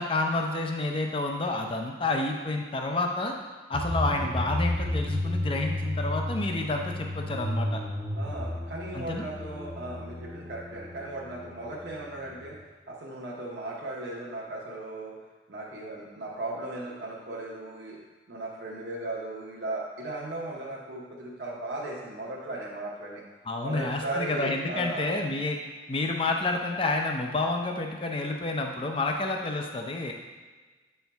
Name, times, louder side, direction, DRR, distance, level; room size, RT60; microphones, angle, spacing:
voice 1, 0.0-3.3 3.7-7.8 8.9-9.2 23.5-25.6 25.9-30.1, left 2 dB, 30° left, 2 dB, 0.5 m, -29 dB
sound 1, 3.7-12.6, left 1 dB, 15° right, 0.7 m, -33 dB
voice 2, 8.2-12.6 12.9-15.2 15.5-18.0 18.3-23.2 23.6-25.1, right 2 dB, 60° right, -4 dB, 0.9 m, -37 dB
7.7 x 4.5 x 3.4 m, 1.3 s
head